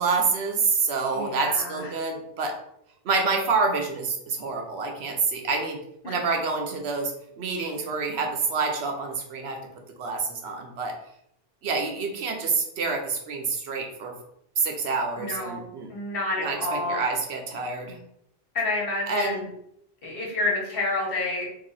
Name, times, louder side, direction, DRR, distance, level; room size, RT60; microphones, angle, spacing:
voice 1, 0.0-2.5 3.0-5.8 6.0-9.6 10.0-10.9 11.6-14.1 14.6-15.9 16.4-18.0 19.1-19.4, right 4 dB, 80° right, 3 dB, 1.0 m, -27 dB
voice 2, 1.1-2.0 6.0-6.1 15.2-15.6 15.9-17.0 18.5-19.5 20.0-21.5, left 2 dB, 65° left, -2 dB, 1.3 m, -29 dB
3.0 x 2.6 x 3.9 m, 0.77 s
omnidirectional pair, 1.0 m